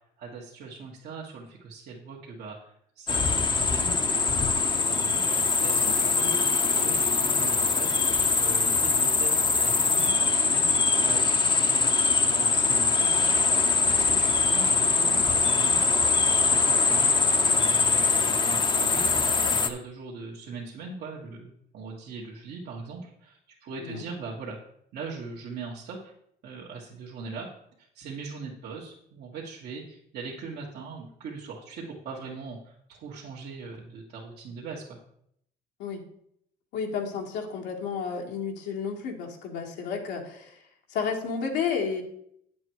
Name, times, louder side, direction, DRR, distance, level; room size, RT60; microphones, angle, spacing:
voice 1, 0.2-13.3 13.9-15.8 16.3-24.6 24.9-26.1 26.4-27.5 27.8-35.0, right 4 dB, 70° right, -5 dB, 1.7 m, -41 dB
sound 1, 3.1-19.7, left 4 dB, 30° left, 0.8 m, -23 dB
voice 2, 36.7-40.6 40.9-42.0, left 6 dB, 85° left, 1 dB, 1.8 m, -31 dB
9.3 x 7.4 x 4.7 m, 0.70 s
cardioid pair, 110°, 17 cm